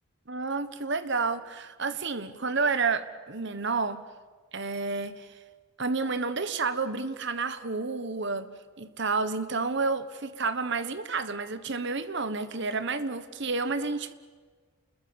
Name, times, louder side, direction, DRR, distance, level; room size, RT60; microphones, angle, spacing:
voice 1, 0.3-4.0 4.5-5.3 5.8-8.5 8.8-14.1, right 4 dB, 50° right, 12 dB, 1.2 m, -30 dB
29.0 x 21.5 x 7.0 m, 1.5 s
head